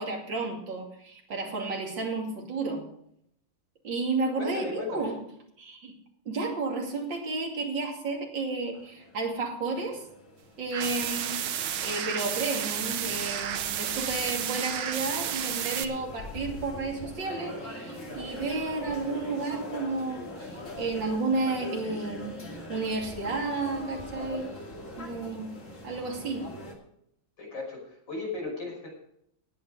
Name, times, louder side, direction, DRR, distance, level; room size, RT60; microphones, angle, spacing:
voice 1, 0.0-2.9 3.8-5.2 5.6-5.9 6.2-10.0 10.6-11.4 11.8-22.4 22.7-24.5 25.0-25.5 25.8-26.5, right 3 dB, 65° right, 0 dB, 3.3 m, -32 dB
voice 2, 4.4-5.1 27.4-28.9, left 3 dB, 65° left, -2 dB, 6.4 m, -36 dB
sound 1, 8.7-26.7, left 1 dB, 40° left, 2.9 m, -42 dB
sound 2, 10.7-15.8, right 9 dB, 85° right, 1.8 m, -31 dB
19.0 x 8.6 x 5.0 m, 0.73 s
omnidirectional pair, 2.2 m